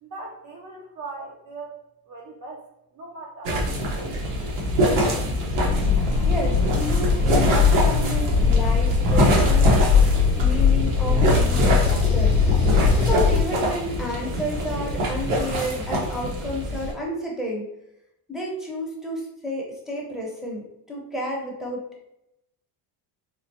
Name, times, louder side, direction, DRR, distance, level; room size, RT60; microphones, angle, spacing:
voice 1, 0.0-2.6 2.9-5.0, right 3 dB, 40° right, -2 dB, 0.6 m, -40 dB
sound 1, 3.4-16.9, equal, 80° right, 1.0 m, -25 dB
sound 2, 5.6-13.4, left 5 dB, 65° left, 0.6 m, -20 dB
voice 2, 6.2-9.8 10.4-12.7 13.0-17.7 18.3-22.0, equal, ahead, -4 dB, 0.8 m, -31 dB
3.7 x 2.1 x 2.7 m, 0.84 s
cardioid pair, 105°, 46 cm